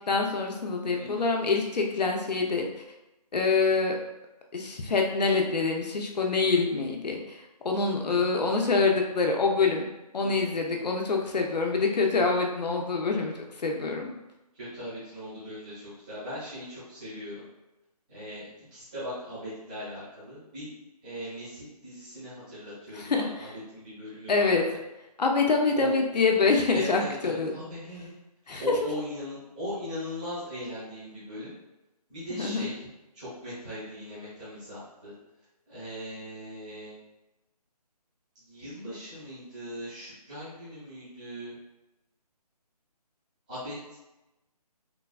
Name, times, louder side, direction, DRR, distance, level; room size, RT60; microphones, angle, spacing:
voice 1, 0.1-2.7 3.3-4.0 4.5-7.4 7.6-9.8 10.1-14.1 23.0-23.2 24.3-24.6 25.2-27.5 28.5-28.6 32.4-32.7, left 4 dB, 85° left, 2 dB, 0.6 m, -25 dB
voice 2, 0.9-1.3 8.1-8.7 10.2-10.5 14.5-17.5 18.1-20.7 21.0-24.8 25.7-25.9 26.7-28.1 28.6-31.5 32.1-32.9 33.1-35.1 35.7-37.0 38.4-41.6 43.5-43.8, equal, 10° right, -13 dB, 0.7 m, -39 dB
3.2 x 2.2 x 2.3 m, 0.97 s
hypercardioid pair, 170°, 21 cm